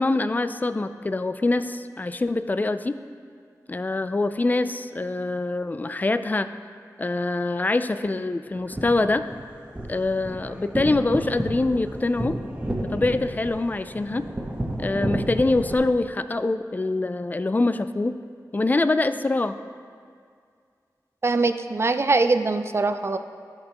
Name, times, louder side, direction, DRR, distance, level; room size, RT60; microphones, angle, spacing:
voice 1, 0.0-3.0 3.7-6.5 7.0-9.2 9.9-12.4 12.9-14.3 14.8-18.2 18.5-19.5, left 2 dB, 25° left, 11 dB, 0.4 m, -24 dB
sound 1, 8.5-15.7, right 1 dB, 20° right, 1.2 m, -31 dB
voice 2, 21.2-23.2, right 3 dB, 40° right, 9 dB, 0.5 m, -22 dB
13.5 x 6.6 x 3.0 m, 2.2 s
wide cardioid pair, 65°, 7 cm